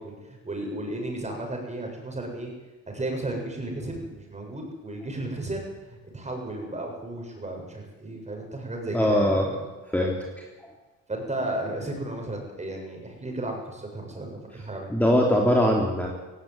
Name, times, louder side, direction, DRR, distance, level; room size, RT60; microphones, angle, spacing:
voice 1, 0.0-2.5 2.9-9.6 11.1-14.9, right 1 dB, 20° right, 1 dB, 7.7 m, -34 dB
voice 2, 8.9-9.4 9.9-10.1 14.9-16.1, equal, 5° left, -1 dB, 3.4 m, -21 dB
17.0 x 16.5 x 9.6 m, 1.2 s
cardioid pair, 90°, 30 cm